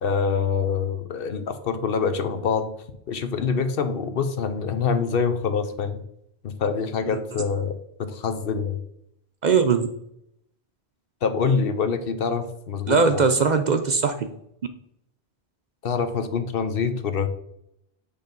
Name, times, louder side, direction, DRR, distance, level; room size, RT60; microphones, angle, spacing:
voice 1, 0.0-2.7 3.1-6.0 6.4-8.8 11.2-13.3 15.8-17.3, left 5 dB, 65° left, 9 dB, 0.9 m, -25 dB
voice 2, 9.4-9.9 12.9-14.3, right 5 dB, 50° right, 7 dB, 0.6 m, -20 dB
8.0 x 3.4 x 5.1 m, 0.76 s
omnidirectional pair, 1.1 m